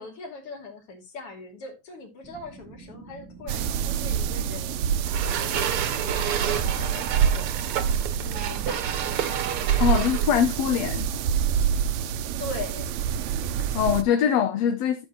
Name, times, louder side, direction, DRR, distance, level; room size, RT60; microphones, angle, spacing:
voice 1, 0.0-7.5 8.2-9.2 12.4-13.0, left 3 dB, 50° left, 3.4 m, -41 dB
sound 1, 2.2-9.7, right 4 dB, 10° right, 1.6 m, -46 dB
sound 2, 3.5-14.0, right 8 dB, 80° right, 2.1 m, -27 dB
sound 3, 5.1-10.6, right 8 dB, 60° right, 1.8 m, -31 dB
voice 2, 9.8-11.1 13.6-15.1, left 8 dB, 70° left, 2.0 m, -23 dB
13.5 x 7.3 x 2.9 m
omnidirectional pair, 3.3 m